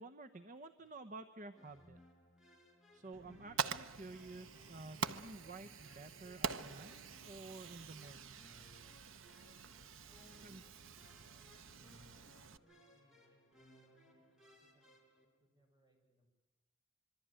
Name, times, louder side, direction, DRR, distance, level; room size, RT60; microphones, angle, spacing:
voice 1, 0.0-2.0 2.9-8.4 10.4-10.6, right 3 dB, 40° right, 8 dB, 1.0 m, -52 dB
sound 1, 1.5-15.3, left 1 dB, ahead, 5.6 m, -65 dB
Fire, 3.1-12.6, right 6 dB, 85° right, 1.0 m, -45 dB
voice 2, 10.0-16.3, right 1 dB, 20° right, 1 dB, 7.5 m, -75 dB
26.0 x 23.5 x 9.0 m, 1.2 s
head